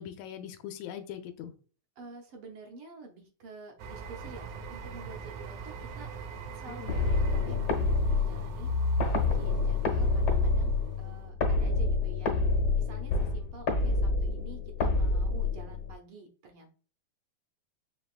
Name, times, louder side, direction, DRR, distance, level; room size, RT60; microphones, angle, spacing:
voice 1, 0.0-1.5 6.7-6.9, left 9 dB, 80° left, 8 dB, 1.8 m, -41 dB
voice 2, 2.0-6.1 6.5-8.7 9.1-16.7, right 3 dB, 65° right, 2 dB, 1.5 m, -49 dB
sound 1, 3.8-11.3, right 5 dB, 85° right, 2.1 m, -43 dB
sound 2, 6.9-15.9, left 3 dB, 55° left, 1.8 m, -27 dB
5.7 x 3.4 x 2.4 m, 0.39 s
omnidirectional pair, 3.3 m